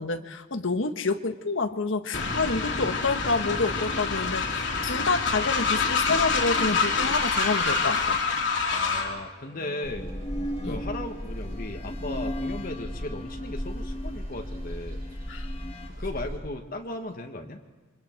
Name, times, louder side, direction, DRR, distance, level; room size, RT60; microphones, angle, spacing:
voice 1, 0.0-8.2 10.6-10.8 15.3-15.5, left 3 dB, 85° left, 7 dB, 1.4 m, -28 dB
Train, 2.1-9.2, left 4 dB, 70° left, 3.2 m, -26 dB
sound 1, 8.0-8.5 9.3-15.9, left 1 dB, 30° left, 1.9 m, -39 dB
voice 2, 8.7-10.1 10.7-15.0 15.9-17.6, left 2 dB, 50° left, 3 dB, 1.6 m, -36 dB
sound 2, 9.8-16.4, equal, 50° right, 6.3 m, -36 dB
28.0 x 24.5 x 4.6 m, 1.3 s
head